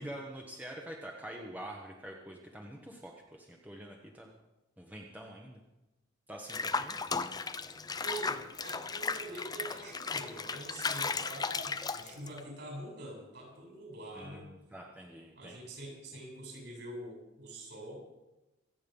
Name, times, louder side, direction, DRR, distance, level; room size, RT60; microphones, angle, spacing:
voice 1, 0.0-4.3 4.8-5.6 6.3-7.0 14.1-15.6, right 1 dB, 10° right, 0 dB, 1.3 m, -46 dB
Water / Bathtub (filling or washing), 6.5-12.4, left 4 dB, 20° left, 0.6 m, -35 dB
voice 2, 8.0-14.5 15.4-18.0, right 1 dB, 55° right, -2 dB, 7.7 m, -45 dB
25.5 x 9.0 x 5.5 m, 1.0 s
head